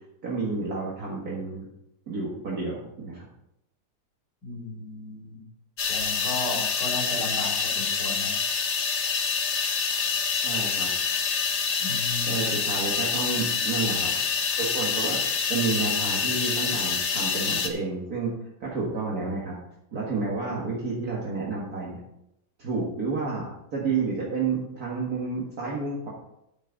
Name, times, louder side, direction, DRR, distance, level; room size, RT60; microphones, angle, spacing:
voice 1, 0.2-1.7 2.1-3.3 10.4-10.9 12.3-14.1 14.6-15.2 15.5-18.3 18.6-19.6 19.9-22.0 22.6-26.1, right 4 dB, 55° right, -5 dB, 2.1 m, -30 dB
voice 2, 4.4-5.4 5.9-8.3 11.8-12.5, left 2 dB, 65° left, -2 dB, 4.2 m, -35 dB
sound 1, 5.8-17.7, left 6 dB, 50° left, 1.0 m, -26 dB
9.5 x 9.0 x 4.0 m, 0.82 s
omnidirectional pair, 1.9 m